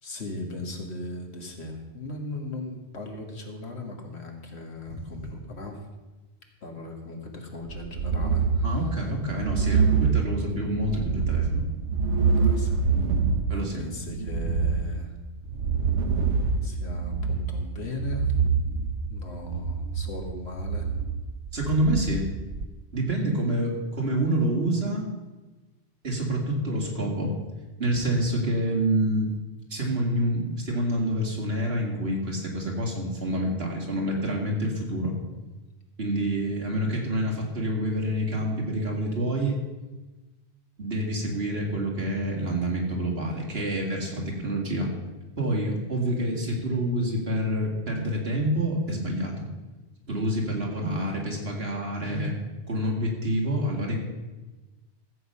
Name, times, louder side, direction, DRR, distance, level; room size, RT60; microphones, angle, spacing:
voice 1, 0.0-5.8 6.6-8.9 9.6-9.8 12.4-12.8 13.5-15.1 16.6-18.3 19.1-20.9, left 2 dB, 70° left, 2 dB, 2.0 m, -38 dB
sound 1, 7.7-22.7, right 5 dB, 85° right, 1.1 m, -26 dB
voice 2, 8.6-11.6 13.5-13.8 21.5-22.3 22.9-25.1 26.0-27.3 27.8-29.3 29.7-35.1 36.0-39.6 40.8-44.9 45.4-49.5 50.1-52.4 52.7-54.0, right 1 dB, 65° right, -1 dB, 2.7 m, -27 dB
14.5 x 7.9 x 5.6 m, 1.2 s
omnidirectional pair, 1.1 m